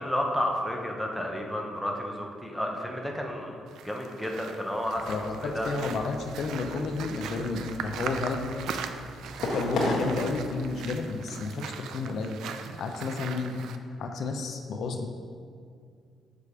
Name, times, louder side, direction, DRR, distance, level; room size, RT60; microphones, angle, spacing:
voice 1, 0.0-5.7, equal, ahead, 1 dB, 0.8 m, -32 dB
sound 1, 3.7-13.8, right 7 dB, 80° right, 0.4 m, -40 dB
sound 2, 4.9-10.8, left 2 dB, 75° left, 1.4 m, -35 dB
voice 2, 5.1-8.5 9.4-12.4 12.8-13.5 14.0-15.1, left 4 dB, 60° left, 4 dB, 0.6 m, -31 dB
6.6 x 5.1 x 4.9 m, 2.3 s
cardioid pair, 140°, 0 cm